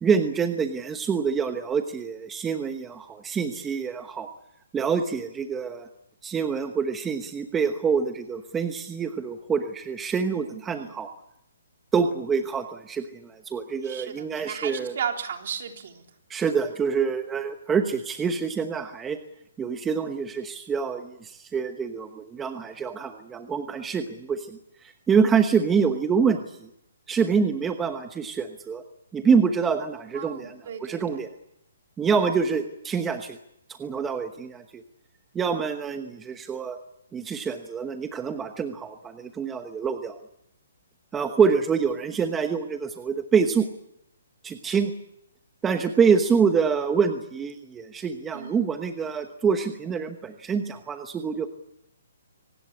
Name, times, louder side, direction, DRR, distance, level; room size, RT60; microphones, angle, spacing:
voice 1, 0.0-4.3 4.7-5.9 6.2-11.1 11.9-14.9 16.3-19.2 19.6-26.7 27.1-28.8 29.1-31.3 32.0-33.4 33.7-34.8 35.3-36.8 37.1-40.2 41.1-43.7 44.4-44.9 45.6-51.5, right 6 dB, 10° right, 7 dB, 1.1 m, -26 dB
voice 2, 10.3-11.0 13.8-16.1 30.1-31.3 48.3-48.7, right 7 dB, 50° right, 4 dB, 3.8 m, -35 dB
24.5 x 18.5 x 8.6 m, 0.80 s
hypercardioid pair, 165°, 0 cm